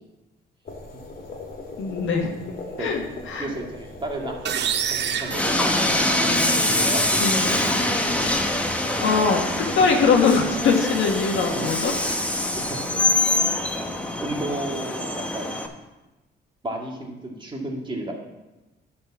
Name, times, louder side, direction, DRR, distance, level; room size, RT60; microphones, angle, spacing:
sound 1, 0.6-14.5, left 2 dB, 50° left, 2.2 m, -41 dB
voice 1, 1.8-2.3 2.8-3.0 3.3-3.5 7.2-7.6 9.0-11.9, left 5 dB, 75° left, 2 dB, 1.5 m, -21 dB
voice 2, 3.4-5.8 6.5-7.6 11.5-11.7 12.6-12.8 14.2-15.5 16.6-18.1, right 1 dB, 25° right, 0 dB, 2.0 m, -33 dB
sound 2, 4.5-6.4, right 9 dB, 60° right, 0.6 m, -28 dB
Train, 5.3-15.7, left 1 dB, 5° left, 1.1 m, -24 dB
10.5 x 4.3 x 7.3 m, 1.1 s
cardioid pair, 90°, 20 cm